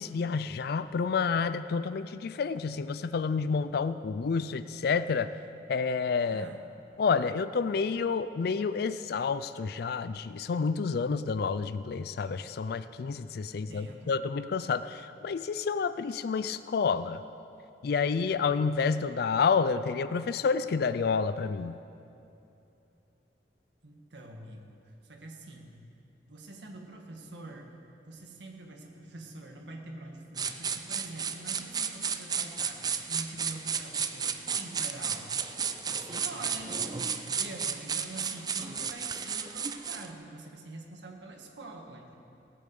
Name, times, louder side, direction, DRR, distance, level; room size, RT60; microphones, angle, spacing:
voice 1, 0.0-5.3 5.7-6.5 7.0-17.2 17.8-21.8, left 5 dB, 60° left, 13 dB, 0.4 m, -29 dB
voice 2, 13.5-14.2 23.8-25.8 26.3-27.8 28.1-35.3 35.9-42.2, right 2 dB, 75° right, 1 dB, 1.7 m, -45 dB
sound 1, 30.4-40.1, right 6 dB, 20° right, 0.5 m, -33 dB
17.5 x 8.5 x 6.9 m, 2.8 s
head